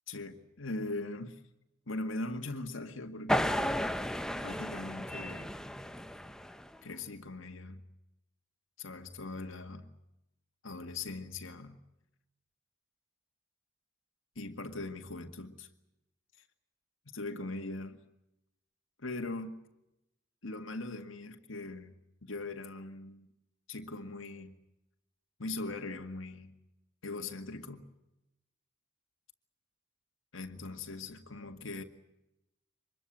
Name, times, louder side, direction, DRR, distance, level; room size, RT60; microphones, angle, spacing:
voice 1, 0.1-1.4 1.9-3.6 4.4-5.5 6.8-7.8 8.8-9.9 10.6-11.8 14.4-15.7 17.1-18.0 19.0-19.6 20.4-22.0 22.2-23.3 23.7-24.5 25.4-26.5 27.0-27.9 30.3-31.8, left 2 dB, 90° left, 2.0 m, -40 dB
sound 1, 3.3-6.8, equal, 5° left, 0.8 m, -33 dB
25.0 x 21.5 x 7.6 m
head